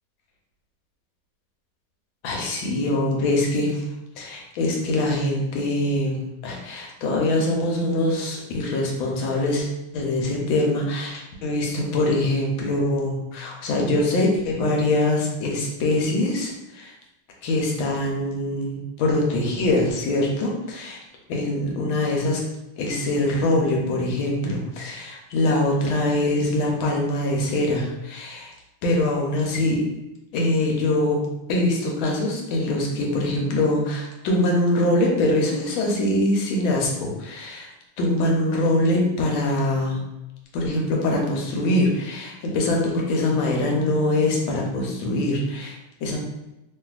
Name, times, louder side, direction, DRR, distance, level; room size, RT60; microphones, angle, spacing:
voice 1, 2.2-3.8 4.2-9.7 9.9-16.9 17.4-21.0 21.3-22.4 22.8-28.5 28.8-29.8 30.3-31.2 31.5-37.6 38.0-40.0 40.5-46.2, left 1 dB, 80° left, -1 dB, 1.4 m, -23 dB
3.1 x 2.6 x 2.3 m, 0.97 s
omnidirectional pair, 2.3 m